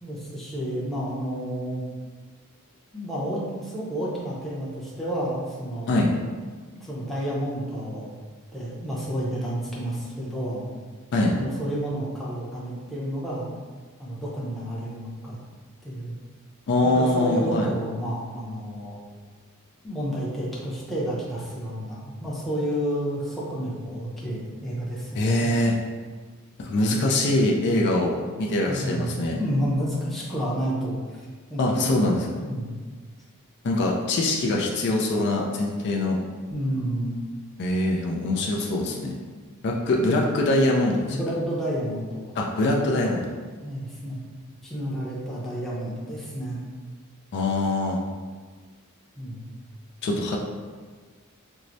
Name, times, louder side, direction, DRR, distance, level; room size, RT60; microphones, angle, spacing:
voice 1, 0.0-1.8 2.9-6.0 6.8-8.1 8.5-10.7 11.3-13.5 14.0-15.4 15.8-16.1 16.8-19.0 19.8-25.5 28.7-31.2 31.5-32.8 36.5-37.1 41.1-42.2 43.6-44.2 44.6-46.6 49.2-49.5, equal, ahead, -7 dB, 0.6 m, -30 dB
voice 2, 16.7-17.7 25.2-25.7 26.6-29.4 31.6-32.2 33.6-36.2 37.6-39.1 39.6-41.2 42.4-43.2 47.3-48.0 50.0-50.4, left 1 dB, 50° left, -2 dB, 0.4 m, -23 dB
4.5 x 2.0 x 2.6 m, 1.5 s
head